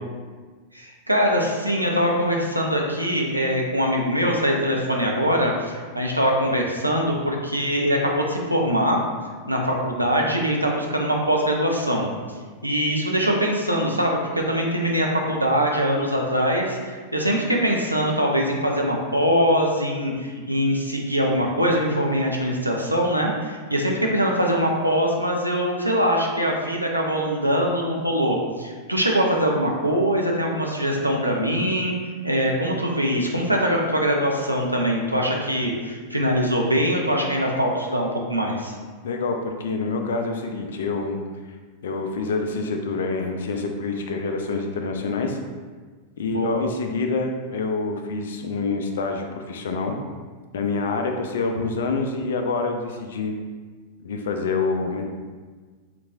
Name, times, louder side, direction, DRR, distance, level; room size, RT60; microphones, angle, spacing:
voice 1, 0.7-9.0 9.5-12.1 12.6-31.9 32.2-38.7 46.2-46.6, equal, 85° right, 0 dB, 0.5 m, -22 dB
voice 2, 39.0-41.2 41.8-45.4 46.2-50.0 50.5-53.3 54.0-55.0, left 3 dB, 60° left, 4 dB, 0.4 m, -26 dB
3.6 x 2.9 x 2.4 m, 1.5 s
figure-of-eight pair, 90°, 0 cm